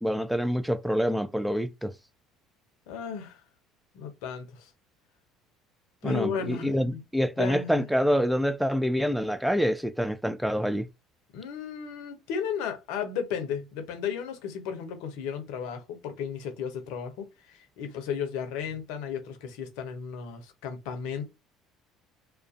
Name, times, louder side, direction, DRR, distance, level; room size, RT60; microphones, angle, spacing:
voice 1, 0.0-1.9 6.0-10.9, equal, ahead, 0.4 m, -26 dB
voice 2, 2.9-3.4 3.9-4.7 6.0-7.0 7.4-7.9 11.3-21.2, left 7 dB, 75° left, 0.7 m, -34 dB
2.4 x 2.1 x 2.5 m
hypercardioid pair, 70°, 0 cm